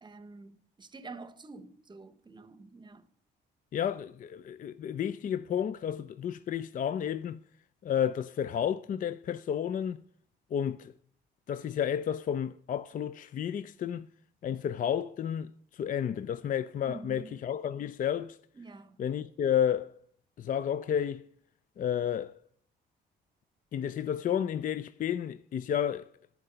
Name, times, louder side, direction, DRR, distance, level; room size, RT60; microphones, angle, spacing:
voice 1, 0.0-3.1 16.8-17.4 18.5-19.0, right 3 dB, 20° right, 0.8 m, -48 dB
voice 2, 3.7-7.4 7.8-10.0 10.5-10.9 11.5-14.1 14.4-18.4 19.0-19.9 20.4-21.2 21.8-22.3 23.7-26.1, left 9 dB, 45° left, 0.4 m, -31 dB
10.5 x 4.6 x 7.7 m
cardioid pair, 90°, 20 cm